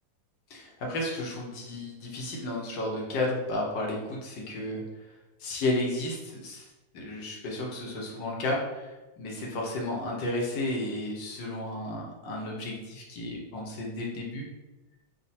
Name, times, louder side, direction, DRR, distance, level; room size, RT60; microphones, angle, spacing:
voice 1, 0.5-4.8 5.4-6.7 6.9-14.5, left 1 dB, 75° left, -2 dB, 1.7 m, -33 dB
4.2 x 2.5 x 4.1 m, 1.1 s
omnidirectional pair, 2.0 m